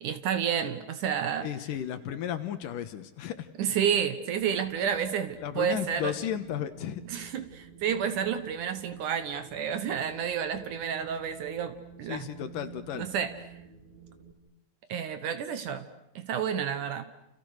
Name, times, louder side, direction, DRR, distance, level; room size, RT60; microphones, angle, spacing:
voice 1, 0.0-1.5 3.6-6.1 7.1-12.3 12.9-13.3 14.9-15.9 16.2-17.1, right 8 dB, 65° right, 10 dB, 2.4 m, -30 dB
voice 2, 1.4-3.5 5.4-7.0 12.1-13.1, left 10 dB, 70° left, 10 dB, 2.6 m, -34 dB
Wind, 4.3-14.3, right 8 dB, 15° right, 2.4 m, -50 dB
29.5 x 29.0 x 6.5 m, 0.79 s
omnidirectional pair, 4.3 m